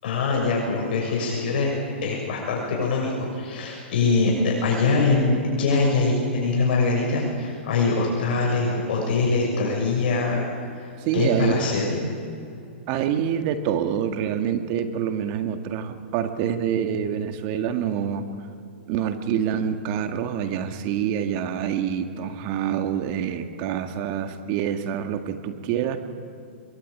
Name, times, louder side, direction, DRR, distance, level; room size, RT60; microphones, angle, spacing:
voice 1, 0.0-12.0, left 3 dB, 60° left, -1 dB, 6.6 m, -23 dB
voice 2, 11.0-11.6 12.9-18.3 18.9-26.0, right 9 dB, 40° right, 7 dB, 1.9 m, -26 dB
23.0 x 22.0 x 8.5 m, 2.6 s
hypercardioid pair, 150°, 6 cm